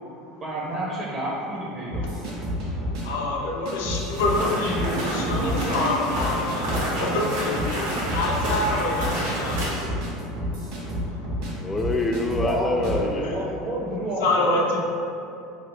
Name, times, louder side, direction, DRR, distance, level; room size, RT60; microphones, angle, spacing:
voice 1, 0.4-2.5 4.9-6.2 12.4-14.8, right 1 dB, 35° right, -5 dB, 0.5 m, -31 dB
sound 1, 1.9-3.0 3.7-4.4 4.7-5.9 6.1-6.9 7.2-7.3 7.5-11.5 11.8-12.5 12.8-13.1, equal, 65° right, 1.1 m, -30 dB
voice 2, 3.0-11.3 13.2-13.4 14.2-14.8, left 2 dB, 85° left, -1 dB, 0.5 m, -27 dB
sound 2, 4.1-9.7, right 1 dB, 90° right, 1.0 m, -29 dB
voice 3, 11.6-13.4, left 2 dB, 20° left, 3 dB, 0.3 m, -25 dB
2.8 x 2.4 x 3.3 m, 2.6 s
supercardioid pair, 115°, 0 cm